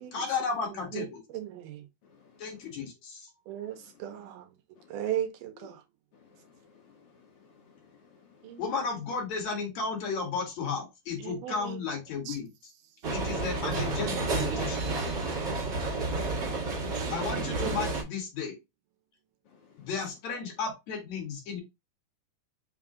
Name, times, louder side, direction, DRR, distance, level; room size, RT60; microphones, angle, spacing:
voice 1, 0.1-1.2 2.4-3.3 5.6-5.7 8.6-12.5 13.1-14.9 17.1-18.6 19.8-21.6, left 5 dB, 60° left, 2.3 m, -34 dB
voice 2, 0.9-1.8 3.5-4.5 4.9-5.8 8.4-8.6 11.2-11.8 12.3-12.4, right 11 dB, 80° right, 2.1 m, -36 dB
voice 3, 2.0-2.4 4.0-4.2 4.8-5.1 6.2-8.5 19.5-19.8, left 6 dB, 75° left, 1.9 m, -60 dB
sound 1, 13.0-18.0, right 3 dB, 60° right, 1.1 m, -30 dB
5.4 x 2.3 x 3.6 m
omnidirectional pair, 4.0 m